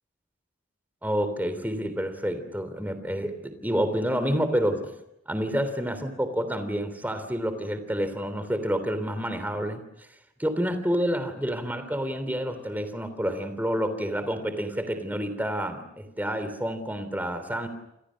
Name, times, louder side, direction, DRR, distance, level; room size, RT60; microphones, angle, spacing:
voice 1, 1.0-4.9 5.3-9.8 10.4-17.7, equal, 10° right, 10 dB, 3.2 m, -29 dB
28.5 x 27.0 x 6.5 m, 0.83 s
head